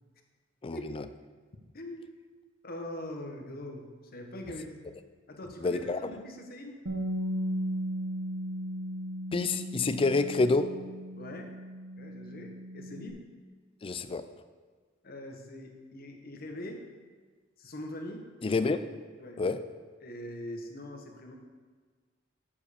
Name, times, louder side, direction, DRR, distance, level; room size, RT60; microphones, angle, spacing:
voice 1, 0.6-1.1 5.6-6.0 9.3-10.7 13.8-14.3 18.4-18.8 19.4-19.6, left 3 dB, 30° left, 11 dB, 0.4 m, -28 dB
voice 2, 1.7-2.1 2.6-4.7 5.3-6.8 11.1-11.5 12.0-13.2 15.0-16.8 17.6-18.3 19.2-19.4 20.0-21.3, left 1 dB, 50° left, 3 dB, 1.1 m, -42 dB
Bass guitar, 6.9-13.1, equal, 80° right, 1.4 m, -36 dB
7.6 x 7.0 x 5.0 m, 1.5 s
head